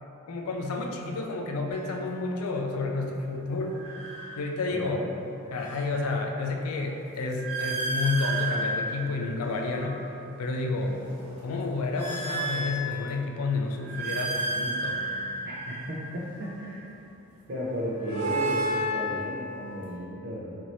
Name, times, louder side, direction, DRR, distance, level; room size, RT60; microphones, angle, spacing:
voice 1, 0.0-3.8 4.4-5.0 5.5-10.1 10.4-11.0 11.4-15.0, left 3 dB, 85° left, 2 dB, 0.4 m, -30 dB
sound 1, 1.7-1.9 3.6-4.8 5.3-10.1 10.6-13.3 13.7-16.7 17.7-20.0, right 1 dB, 80° right, 1.0 m, -33 dB
voice 2, 4.7-5.1 15.4-16.9 17.5-20.6, equal, 50° right, -6 dB, 0.6 m, -34 dB
4.2 x 2.7 x 3.0 m, 2.8 s
head